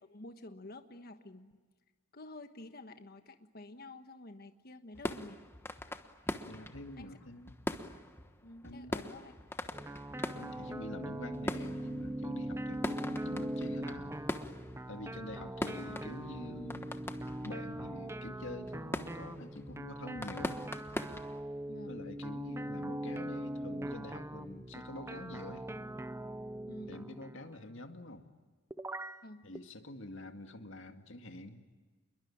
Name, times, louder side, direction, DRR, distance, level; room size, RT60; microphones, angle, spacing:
voice 1, 0.0-1.6 2.1-5.4 7.0-7.2 8.4-9.3 15.2-15.6 21.7-22.0 26.7-27.1 29.2-29.4, left 2 dB, 50° left, 8 dB, 1.4 m, -50 dB
sound 1, 4.9-21.4, left 1 dB, 10° left, 1.2 m, -43 dB
voice 2, 6.5-7.6 8.6-8.9 10.3-14.2 14.9-17.0 17.4-20.6 21.9-25.7 26.9-28.3 29.4-31.6, left 1 dB, 65° left, 6 dB, 2.2 m, -47 dB
sound 2, 9.7-27.6 28.7-29.2 29.5-29.6, right 1 dB, 15° right, 0.7 m, -41 dB
28.5 x 22.0 x 8.7 m, 1.4 s
head